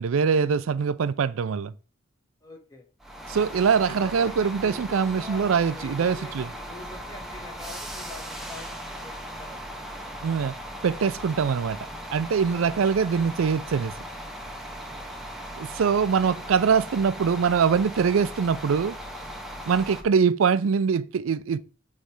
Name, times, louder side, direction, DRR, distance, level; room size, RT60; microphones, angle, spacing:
voice 1, 0.0-1.7 3.3-6.5 10.2-10.5 10.8-11.8 12.1-13.9 15.6-19.0 19.7-21.6, right 6 dB, 90° right, 0.4 m, -23 dB
voice 2, 2.4-2.9 3.7-9.9 14.7-15.2, left 2 dB, 20° left, 1.4 m, -45 dB
sound 1, 3.0-20.0, equal, ahead, 0.6 m, -38 dB
6.5 x 3.2 x 4.7 m
head